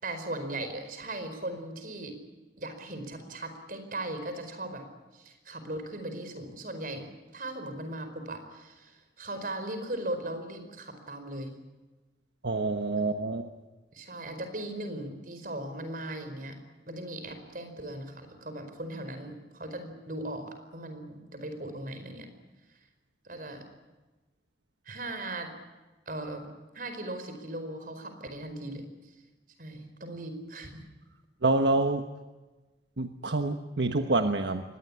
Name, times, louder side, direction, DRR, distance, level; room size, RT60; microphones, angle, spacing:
voice 1, 0.0-2.2 2.6-4.8 5.1-11.5 13.9-16.6 16.9-22.3 23.2-23.6 24.8-25.5 26.1-28.9 29.6-30.8, right 1 dB, 50° right, 8 dB, 4.8 m, -38 dB
voice 2, 12.4-13.5 31.4-32.0 33.0-34.6, right 2 dB, 80° right, 6 dB, 1.3 m, -27 dB
24.0 x 19.5 x 9.9 m, 1.2 s
head